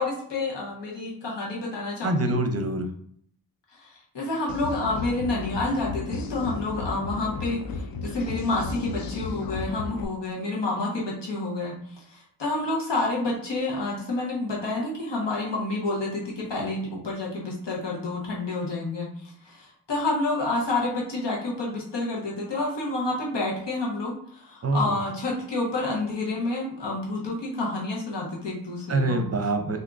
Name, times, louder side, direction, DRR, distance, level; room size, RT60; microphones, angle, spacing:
voice 1, 0.0-2.3 3.8-11.7 12.1-19.1 19.4-29.2, left 2 dB, 85° left, -3 dB, 1.1 m, -29 dB
voice 2, 2.0-2.9 24.6-25.0 28.9-29.8, right 2 dB, 35° right, 6 dB, 0.6 m, -25 dB
sound 1, 4.5-10.1, left 4 dB, 60° left, 0.5 m, -33 dB
3.5 x 2.7 x 2.5 m, 0.64 s
cardioid pair, 55°, 41 cm